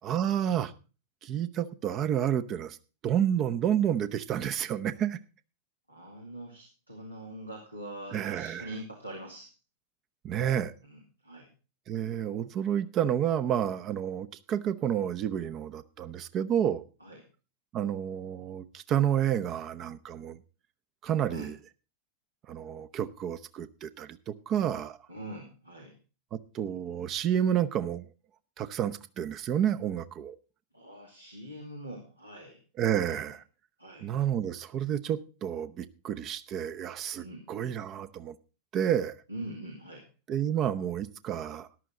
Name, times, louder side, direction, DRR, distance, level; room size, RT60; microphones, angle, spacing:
voice 1, 0.0-0.7 1.2-2.8 3.0-5.2 8.1-8.7 10.2-10.7 11.9-16.8 17.7-20.4 21.0-21.6 22.5-25.0 26.3-28.1 28.6-30.4 32.8-33.4 34.0-38.4 38.7-39.1 40.3-41.7, right 9 dB, 35° right, 0.8 m, -30 dB
voice 2, 5.9-9.5 10.8-11.5 17.0-17.2 21.3-21.5 25.1-25.9 30.7-32.6 33.0-33.2 33.8-34.1 37.2-37.5 39.3-40.0, right 1 dB, 85° right, 2.5 m, -43 dB
13.5 x 11.0 x 3.8 m
figure-of-eight pair, 90°, 0 cm